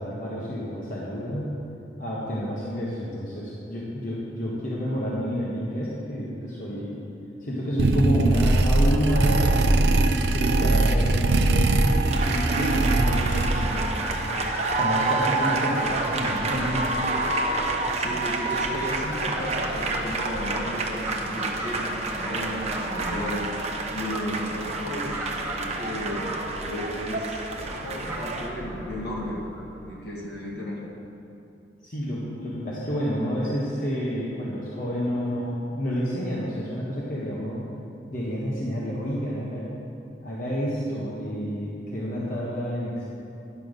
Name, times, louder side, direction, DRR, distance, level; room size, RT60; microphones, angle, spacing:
voice 1, 0.0-1.5 2.0-7.0 7.4-11.7 12.2-14.3 14.8-16.9 31.8-37.6 38.1-39.6 40.2-43.0, equal, 50° left, -7 dB, 1.4 m, -29 dB
sound 1, 7.8-13.9, right 2 dB, 70° right, 0.5 m, -21 dB
sound 2, 12.1-28.5, right 3 dB, 40° right, 0.8 m, -29 dB
Fowl, 12.7-30.0, right 1 dB, 10° right, 1.8 m, -36 dB
voice 2, 17.9-23.5 23.9-25.2 25.5-26.3 26.6-27.4 27.7-29.4 29.9-30.8, equal, 65° left, -4 dB, 2.1 m, -34 dB
11.0 x 5.7 x 6.6 m, 2.7 s
head